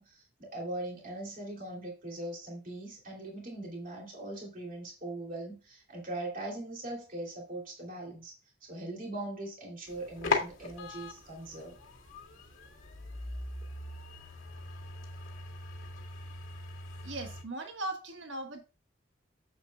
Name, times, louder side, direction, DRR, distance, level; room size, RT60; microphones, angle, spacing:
voice 1, 0.0-8.3 8.6-11.8, right 1 dB, 45° right, 0 dB, 2.9 m, -40 dB
sound 1, 9.9-17.4, left 3 dB, 85° left, 2.0 m, -39 dB
voice 2, 17.0-18.6, right 2 dB, 70° right, 4 dB, 1.6 m, -38 dB
10.0 x 7.6 x 2.3 m, 0.30 s
head